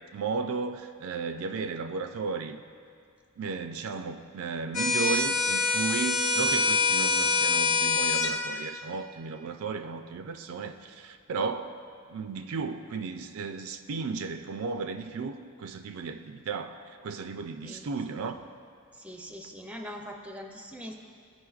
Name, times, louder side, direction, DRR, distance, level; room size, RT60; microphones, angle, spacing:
voice 1, 0.1-2.6 3.4-11.8 12.1-18.5, right 4 dB, 65° right, 7 dB, 0.4 m, -34 dB
sound 1, 4.7-8.3, left 4 dB, 75° left, 0.8 m, -25 dB
voice 2, 19.0-21.0, equal, 5° right, 3 dB, 0.5 m, -42 dB
14.5 x 5.2 x 2.4 m, 2.2 s
head